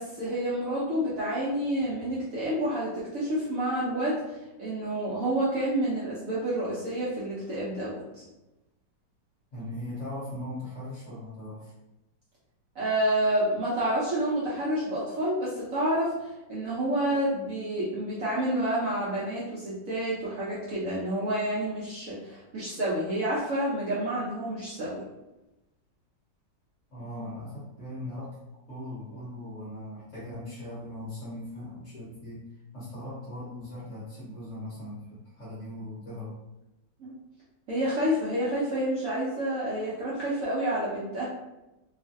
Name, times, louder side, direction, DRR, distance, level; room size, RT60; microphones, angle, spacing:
voice 1, 0.0-8.2 12.7-25.0 37.0-37.1 37.7-41.3, right 1 dB, 60° right, -8 dB, 0.9 m, -29 dB
voice 2, 9.5-11.7 26.9-28.3 28.7-32.4 32.7-36.4, left 1 dB, 50° left, -7 dB, 1.0 m, -39 dB
3.0 x 2.5 x 2.5 m, 0.96 s
omnidirectional pair, 2.1 m